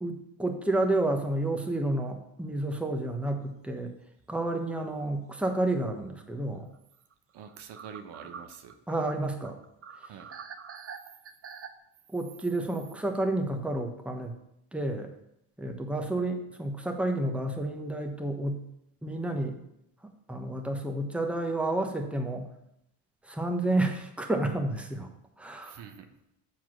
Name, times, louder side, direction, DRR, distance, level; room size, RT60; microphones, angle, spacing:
voice 1, 0.0-3.9 4.3-6.7 8.9-9.6 10.0-10.1 12.1-14.3 14.7-15.1 15.6-18.6 19.0-19.6 20.3-22.5 23.2-25.1 25.4-25.8, right 2 dB, 5° right, 4 dB, 1.1 m, -30 dB
sound 1, 3.6-3.8 4.2-4.3 6.7-6.8 7.1-7.2 7.5-11.7, right 6 dB, 30° right, 0.7 m, -45 dB
voice 2, 7.3-8.8 10.0-10.3 25.6-26.1, right 7 dB, 65° right, 6 dB, 1.1 m, -46 dB
7.9 x 4.5 x 6.2 m, 0.80 s
supercardioid pair, 75°, 45 cm